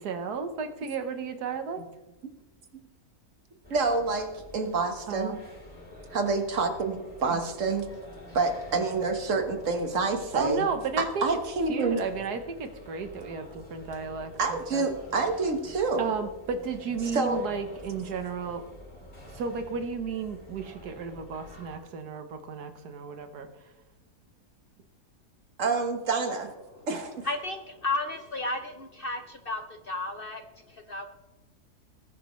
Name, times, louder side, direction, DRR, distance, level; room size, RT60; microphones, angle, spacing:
voice 1, 0.0-1.8 5.1-5.4 7.3-7.4 10.3-11.2 11.7-14.9 16.0-18.6 19.3-23.5, right 5 dB, 85° right, 8 dB, 1.6 m, -33 dB
sound 1, 3.6-21.8, left 1 dB, 35° left, 3.7 m, -48 dB
voice 2, 3.7-5.3 6.1-7.9 8.3-10.6 11.0-12.0 14.4-16.1 17.1-17.4 25.6-26.5 26.9-27.3, right 4 dB, 55° right, 6 dB, 1.7 m, -27 dB
voice 3, 27.2-31.1, left 2 dB, 50° left, 7 dB, 0.7 m, -33 dB
19.0 x 11.5 x 3.1 m, 1.1 s
omnidirectional pair, 1.6 m